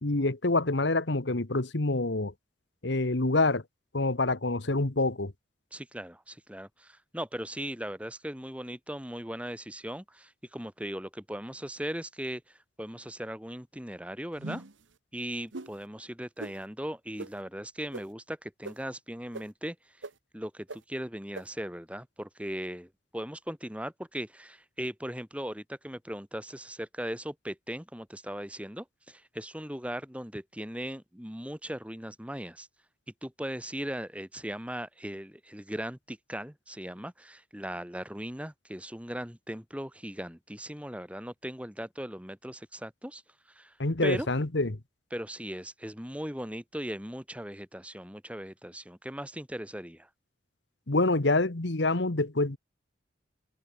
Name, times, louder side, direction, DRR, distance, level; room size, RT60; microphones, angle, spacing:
voice 1, 0.0-2.3 2.8-3.6 3.9-5.3 43.8-44.8 50.9-52.6, left 2 dB, 70° left, 1.5 m, -26 dB
voice 2, 5.7-14.6 15.1-20.0 20.3-32.7 33.2-43.2 43.5-43.7 44.0-44.3 45.1-50.1, equal, 5° right, 6.5 m, -38 dB
sound 1, 14.4-14.8 15.5-15.7 16.4-16.5 17.2-17.3 17.9-18.0 18.6-18.7 19.3-19.4 20.0-20.1 20.7-20.8 21.3-21.4, right 2 dB, 85° right, 1.3 m, -39 dB
head